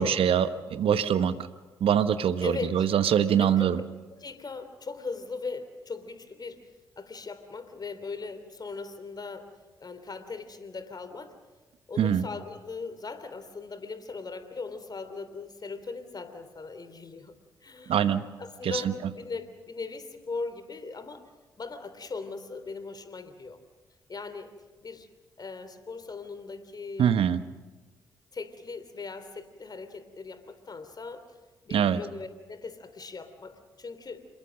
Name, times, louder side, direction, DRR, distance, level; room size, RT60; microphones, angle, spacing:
voice 1, 0.0-1.4 1.8-3.8 12.0-12.2 17.9-18.2 18.6-18.9 27.0-27.4 31.7-32.0, right 8 dB, 60° right, 12 dB, 1.2 m, -24 dB
voice 2, 2.4-2.9 3.4-3.7 4.1-6.6 7.0-9.5 9.8-11.4 11.9-17.3 17.6-18.0 18.4-21.2 21.6-23.6 24.1-24.5 24.8-25.1 25.4-27.2 28.3-31.3 31.6-34.3, left 4 dB, 40° left, 11 dB, 3.2 m, -39 dB
27.0 x 22.0 x 6.5 m, 1.3 s
hypercardioid pair, 40°, 11 cm